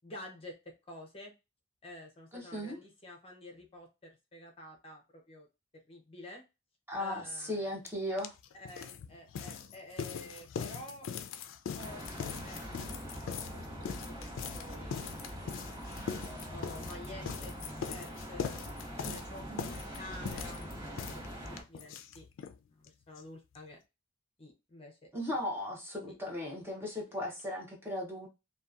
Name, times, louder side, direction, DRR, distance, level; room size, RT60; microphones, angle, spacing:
voice 1, 0.0-1.3 1.8-5.5 5.9-6.4 7.0-7.8 8.5-11.1 11.7-15.2 16.5-18.6 19.0-22.3 22.7-23.8 24.4-25.1 26.1-26.2 27.0-27.1, left 1 dB, 30° left, 1 dB, 0.6 m, -50 dB
voice 2, 2.3-2.8 6.9-8.3 19.0-19.2 19.5-19.7 25.1-28.3, left 1 dB, 10° right, -2 dB, 0.7 m, -37 dB
sound 1, 7.9-8.0 8.2-22.6 22.8-22.9 23.2-23.3 23.5-23.6, left 7 dB, 70° left, 0.3 m, -41 dB
sound 2, 11.8-21.6, equal, 30° right, 1.4 m, -43 dB
2.7 x 2.2 x 2.4 m, 0.25 s
head